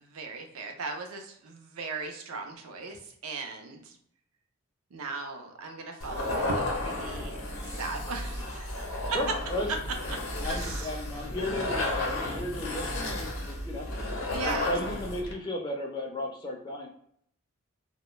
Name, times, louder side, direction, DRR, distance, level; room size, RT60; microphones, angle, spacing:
voice 1, 0.0-4.0 4.9-8.7 10.1-10.2 10.4-10.9 14.3-14.7, right 3 dB, 90° right, 4 dB, 0.5 m, -38 dB
sound 1, 6.0-15.3, left 1 dB, 75° left, 0.6 m, -33 dB
voice 2, 9.1-9.7 10.4-13.9 14.4-16.9, left 1 dB, 20° left, 0 dB, 0.4 m, -35 dB
2.2 x 2.1 x 2.9 m, 0.68 s
head